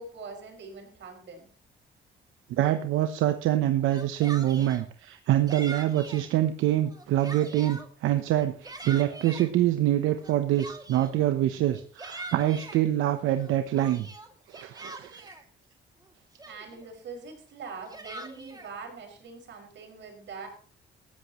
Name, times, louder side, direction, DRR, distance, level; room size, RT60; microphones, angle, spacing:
voice 1, 0.0-1.5 16.4-20.5, right 4 dB, 65° right, 3 dB, 5.8 m, -43 dB
voice 2, 2.5-14.1 14.5-15.3, right 13 dB, 90° right, 8 dB, 0.9 m, -25 dB
Yell, 3.8-4.8 5.5-6.3 6.8-7.9 8.4-9.5 10.2-11.2 11.7-12.8 13.4-15.4 16.0-16.1 16.4-16.9 17.6-18.7, right 2 dB, 20° right, 2.5 m, -42 dB
18.5 x 14.0 x 3.1 m, 0.43 s
cardioid pair, 90°, 20 cm